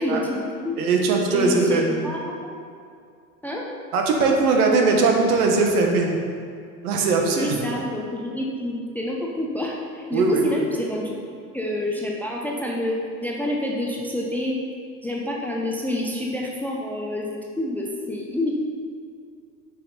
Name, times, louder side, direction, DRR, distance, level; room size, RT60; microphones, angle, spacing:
voice 1, 0.0-0.8 1.3-2.6 3.4-3.7 7.4-11.2 11.5-12.9 13.2-14.6 15.0-18.5, left 1 dB, 5° left, -2 dB, 0.6 m, -28 dB
voice 2, 0.8-2.0 3.9-6.2 6.8-7.5 10.1-10.6, right 3 dB, 65° right, 2 dB, 1.5 m, -20 dB
8.0 x 5.8 x 4.2 m, 2.3 s
hypercardioid pair, 95°, 50 cm